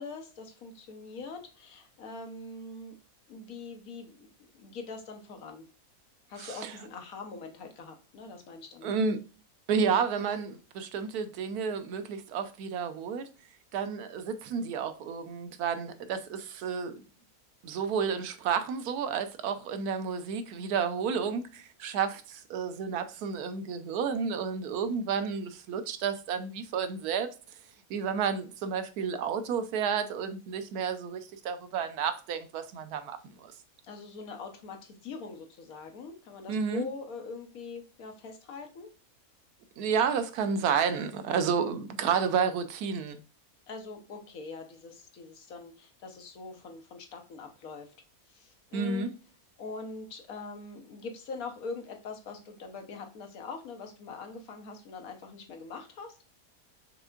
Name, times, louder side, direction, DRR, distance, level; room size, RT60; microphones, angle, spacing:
voice 1, 0.0-2.9 3.3-5.7 6.3-8.9 33.8-38.9 43.7-47.9 48.3-49.1 49.6-56.2, left 4 dB, 75° left, 1.3 m, -43 dB
voice 2, 6.4-6.7 8.8-9.2 9.7-13.3 13.7-17.0 17.6-27.3 27.9-33.5 36.5-36.8 39.8-43.2 48.7-49.1, right 6 dB, 90° right, 1.2 m, -31 dB
5.4 x 3.3 x 2.4 m
omnidirectional pair, 1.6 m